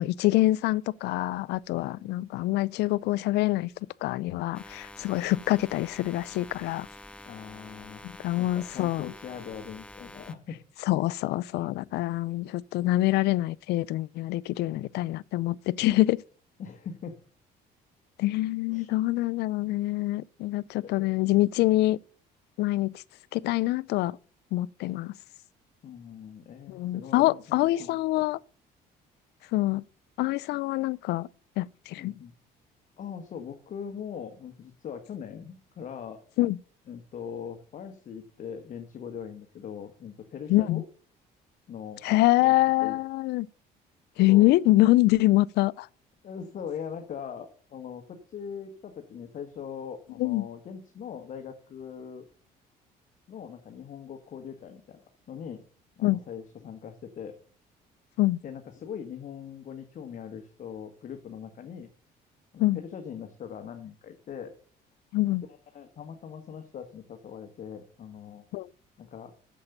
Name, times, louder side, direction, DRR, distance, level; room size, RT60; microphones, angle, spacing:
voice 1, 0.0-3.7 4.0-6.9 8.0-9.1 10.9-16.2 18.2-22.0 22.6-22.9 23.3-24.2 24.5-25.1 26.7-28.4 29.5-29.8 30.2-31.3 31.6-32.1 36.4-36.6 40.5-40.8 42.0-43.5 44.2-45.9 50.2-50.5 56.0-56.2 58.2-58.4 62.6-62.8 65.1-65.4 68.5-68.7, left 17 dB, 75° left, 0.4 m, -25 dB
voice 2, 1.8-2.1 7.3-8.0 8.4-10.6 14.7-14.9 16.6-17.1 18.7-19.0 20.8-21.1 25.8-28.0 32.0-32.3 33.0-36.2 36.9-40.8 41.7-42.5 42.8-43.0 44.2-44.5 46.2-52.3 53.3-55.0 55.3-55.6 56.0-57.3 58.4-61.9 62.5-64.5 65.7-68.4 69.0-69.3, left 7 dB, 50° left, 1.3 m, -41 dB
sound 1, 4.5-10.4, left 1 dB, 5° left, 0.6 m, -47 dB
8.5 x 7.0 x 6.6 m
cardioid pair, 110°, 17 cm